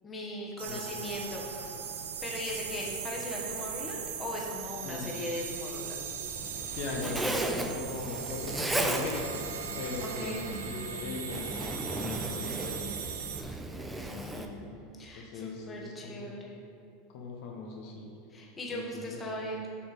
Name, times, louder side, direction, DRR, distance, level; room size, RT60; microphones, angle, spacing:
voice 1, 0.0-1.7 2.2-6.0 10.0-10.4 14.0-16.7 18.3-19.7, left 1 dB, 20° left, -2 dB, 1.2 m, -39 dB
sound 1, 0.6-13.4, right 7 dB, 90° right, 0.6 m, -39 dB
voice 2, 4.8-5.2 6.7-9.5 9.8-13.0 14.2-14.6 15.1-16.3 17.1-18.1 18.7-19.4, left 3 dB, 65° left, 0 dB, 0.9 m, -39 dB
Zipper (clothing), 6.3-14.5, right 2 dB, 10° right, 0.5 m, -36 dB
6.9 x 3.4 x 5.1 m, 2.5 s
supercardioid pair, 115°, 0 cm